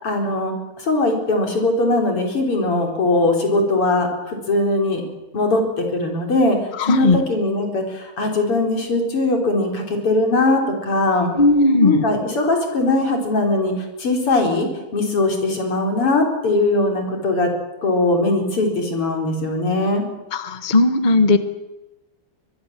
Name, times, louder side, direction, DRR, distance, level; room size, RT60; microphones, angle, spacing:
voice 1, 0.0-5.0 5.3-6.6 6.9-11.3 11.8-13.7 14.0-14.7 14.9-17.5 17.8-20.0, left 2 dB, 90° left, 2 dB, 5.2 m, -20 dB
voice 2, 6.8-7.2 11.4-12.0 20.3-21.4, left 2 dB, 25° left, 9 dB, 1.3 m, -16 dB
24.0 x 21.0 x 7.6 m, 1.1 s
omnidirectional pair, 2.4 m